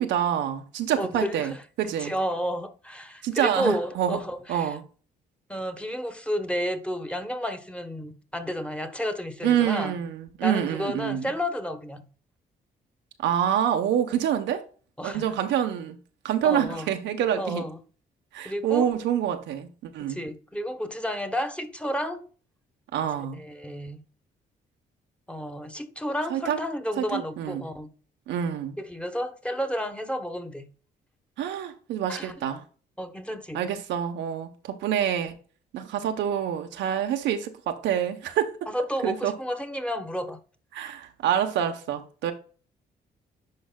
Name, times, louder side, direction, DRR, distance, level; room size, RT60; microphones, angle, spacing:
voice 1, 0.0-2.1 3.2-4.2 4.5-4.8 9.4-11.3 13.2-14.6 15.0-16.0 16.2-17.6 18.3-20.2 22.9-23.4 26.3-26.6 27.0-27.6 28.3-28.8 31.4-32.6 33.5-35.4 35.7-38.5 39.0-39.3 40.7-42.3, right 9 dB, 85° right, 1.0 m, -27 dB
voice 2, 1.0-1.6 2.0-4.8 5.5-10.0 10.4-12.0 15.0-15.3 16.4-16.9 17.4-17.8 18.4-18.9 20.1-22.3 23.4-24.0 25.3-27.9 28.8-30.6 32.1-32.3 33.0-33.6 38.7-40.4, equal, 5° left, 1.1 m, -31 dB
10.5 x 4.7 x 2.3 m
cardioid pair, 80°, 18 cm